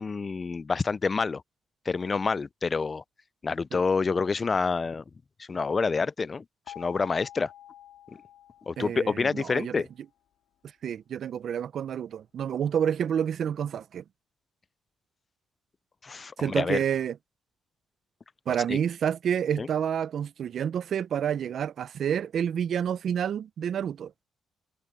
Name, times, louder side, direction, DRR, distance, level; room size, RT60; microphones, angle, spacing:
voice 1, 0.0-1.4 1.9-3.0 3.4-5.0 5.4-6.4 6.8-7.5 8.7-9.9 16.0-16.8 18.7-18.8 19.6-19.7, left 4 dB, 35° left, 0.4 m, -27 dB
sound 1, 6.7-9.6, left 12 dB, 75° left, 4.0 m, -48 dB
voice 2, 8.8-9.8 10.8-14.0 16.4-17.1 18.5-24.1, right 8 dB, 60° right, 0.6 m, -29 dB
cardioid pair, 90°, 0 cm